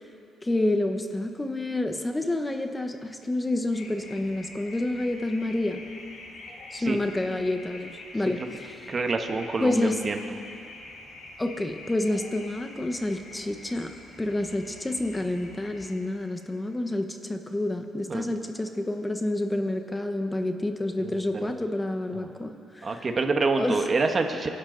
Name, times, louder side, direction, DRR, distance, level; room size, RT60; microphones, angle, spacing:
voice 1, 0.4-5.8 6.7-8.8 9.6-10.0 11.4-13.9 14.2-23.1 23.5-23.8, left 1 dB, 15° left, 6 dB, 1.2 m, -28 dB
sound 1, 3.7-15.9, left 2 dB, 70° left, 3.4 m, -46 dB
voice 2, 8.9-10.2 18.1-18.3 21.0-21.5 22.1-22.3 22.8-24.5, right 3 dB, 35° right, 5 dB, 1.4 m, -27 dB
28.0 x 11.5 x 4.0 m, 2.6 s
cardioid pair, 90°, 0 cm